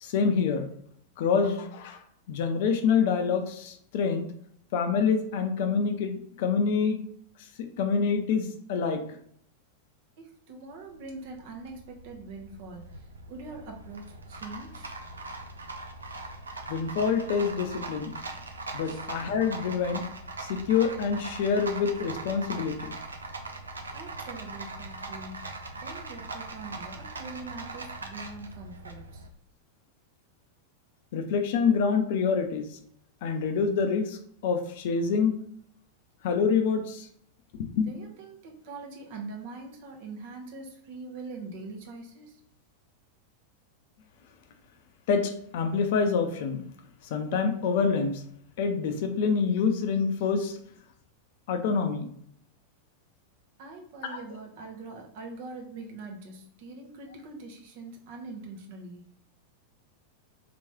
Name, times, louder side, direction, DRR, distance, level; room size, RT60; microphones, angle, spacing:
voice 1, 0.0-0.7 1.2-2.0 2.3-4.3 4.7-7.0 7.8-9.0 16.7-18.2 18.7-20.0 20.4-23.0 31.1-32.7 33.2-35.4 36.2-37.1 37.6-38.0 45.1-46.6 47.1-48.2 48.6-50.6 51.5-52.1 54.0-54.2, left 5 dB, 50° left, 7 dB, 0.5 m, -26 dB
voice 2, 10.2-14.9 18.8-19.1 23.9-29.3 37.9-42.4 53.6-59.1, right 3 dB, 50° right, 2 dB, 0.8 m, -43 dB
Rattle, 10.7-29.3, right 3 dB, 75° right, 0.4 m, -41 dB
3.4 x 3.0 x 2.9 m, 0.65 s
figure-of-eight pair, 90°, 0 cm